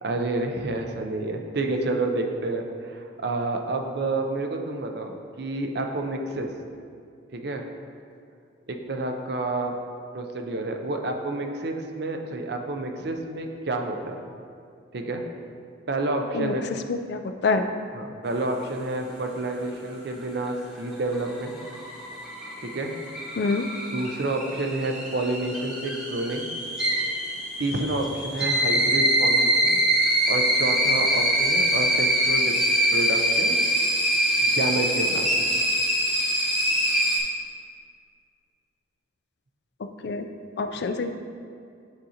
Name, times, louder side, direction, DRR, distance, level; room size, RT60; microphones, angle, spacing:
voice 1, 0.0-6.5 7.3-7.6 8.7-9.7 10.1-14.2 14.9-15.2 15.9-16.6 18.0-21.6 22.6-22.9 23.9-26.5 27.6-29.8 30.3-32.6 32.9-33.6 34.4-35.3, right 2 dB, 55° right, 4 dB, 0.5 m, -29 dB
voice 2, 16.9-17.6 23.4-23.7 40.0-40.3 40.6-41.1, left 4 dB, 55° left, 7 dB, 0.3 m, -26 dB
sound 1, 20.9-37.2, equal, 5° right, 0.9 m, -24 dB
9.9 x 3.8 x 2.8 m, 2.3 s
head